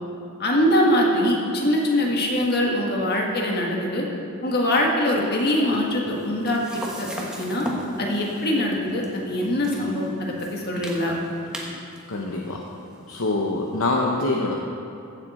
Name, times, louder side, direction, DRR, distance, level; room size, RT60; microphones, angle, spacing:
voice 1, 0.4-4.0 4.4-7.1 7.4-7.7 8.0-11.2, left 1 dB, 45° left, -1 dB, 1.7 m, -23 dB
sound 1, 5.7-14.0, equal, 5° right, 1.1 m, -38 dB
voice 2, 12.1-12.6 13.1-14.5, left 2 dB, 65° left, -1 dB, 0.8 m, -24 dB
15.0 x 7.7 x 4.3 m, 2.8 s
head